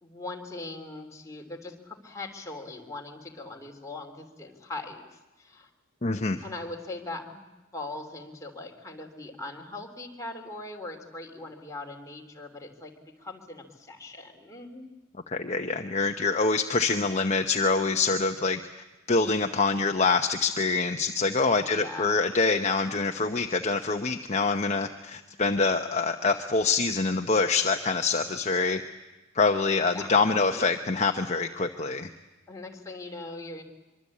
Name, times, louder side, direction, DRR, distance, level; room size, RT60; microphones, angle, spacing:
voice 1, 0.0-5.7 6.4-12.9 13.2-14.9 21.6-22.2 29.7-30.1 30.3-30.7 32.5-33.6, left 2 dB, 15° left, 1 dB, 3.0 m, -40 dB
voice 2, 6.0-6.4 15.3-18.6 19.1-28.8 29.3-32.1, left 4 dB, 35° left, 5 dB, 0.9 m, -25 dB
24.0 x 24.0 x 8.5 m, 1.1 s
head